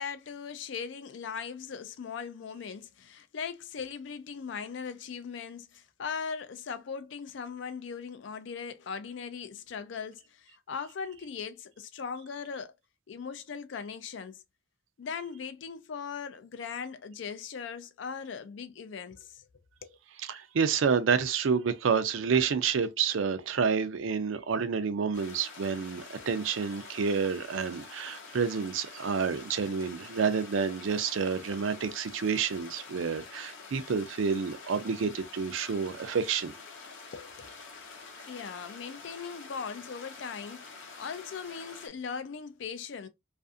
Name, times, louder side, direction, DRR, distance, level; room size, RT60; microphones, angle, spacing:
voice 1, 0.0-12.7 13.1-14.4 15.0-19.4 19.8-19.9 37.1-37.5 38.3-43.1, left 6 dB, 70° left, 0.4 m, -39 dB
voice 2, 20.2-36.5, right 6 dB, 85° right, 0.4 m, -29 dB
sound 1, 25.1-41.9, left 4 dB, 90° left, 0.8 m, -47 dB
2.5 x 2.5 x 2.4 m
head